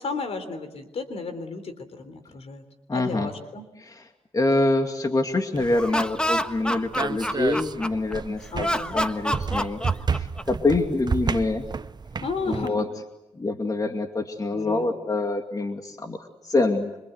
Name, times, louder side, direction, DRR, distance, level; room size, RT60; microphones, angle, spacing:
voice 1, 0.0-2.6 2.9-3.7 8.5-9.0 12.2-12.9 14.5-14.9, left 4 dB, 65° left, 10 dB, 3.7 m, -33 dB
voice 2, 2.9-3.3 3.8-4.1 4.3-9.8 10.2-11.7 12.5-12.8 13.4-16.9, left 2 dB, 35° left, 5 dB, 2.4 m, -25 dB
sound 1, 5.5-12.7, right 5 dB, 40° right, 0.9 m, -31 dB
Laughter, 5.6-8.1 8.6-10.6, equal, 10° left, 1.4 m, -27 dB
26.5 x 25.5 x 8.1 m, 0.96 s
cardioid pair, 70°, 11 cm